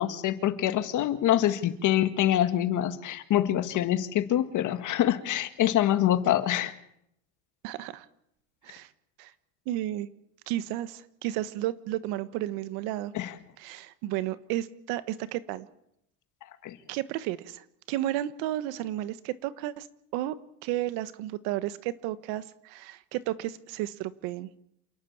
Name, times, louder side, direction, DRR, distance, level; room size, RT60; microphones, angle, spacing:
voice 1, 0.0-6.7 13.1-13.3 16.6-16.8, left 12 dB, 50° left, 10 dB, 1.8 m, -25 dB
voice 2, 7.6-8.0 8.6-8.9 9.2-9.3 9.7-10.1 10.5-13.1 13.6-15.7 16.9-19.9 20.1-20.3 20.6-24.5, right 14 dB, 70° right, 14 dB, 1.3 m, -32 dB
28.0 x 11.0 x 8.7 m, 0.76 s
supercardioid pair, 110°, 38 cm